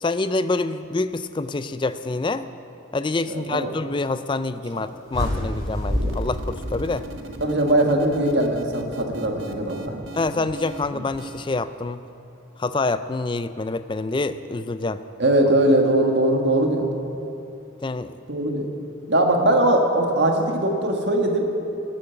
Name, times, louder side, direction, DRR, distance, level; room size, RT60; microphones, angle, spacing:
voice 1, 0.0-2.5 2.9-7.0 10.1-12.0 12.6-15.0 17.8-18.1, left 3 dB, 25° left, 12 dB, 0.4 m, -26 dB
voice 2, 3.3-3.7 7.4-9.9 15.2-16.9 18.3-18.7 19.1-21.5, right 1 dB, 60° right, 2 dB, 1.6 m, -20 dB
sound 1, 5.1-7.5, left 1 dB, 20° right, 2.8 m, -27 dB
sound 2, 5.8-11.6, right 2 dB, 85° right, 1.0 m, -38 dB
19.0 x 8.7 x 5.8 m, 2.8 s
head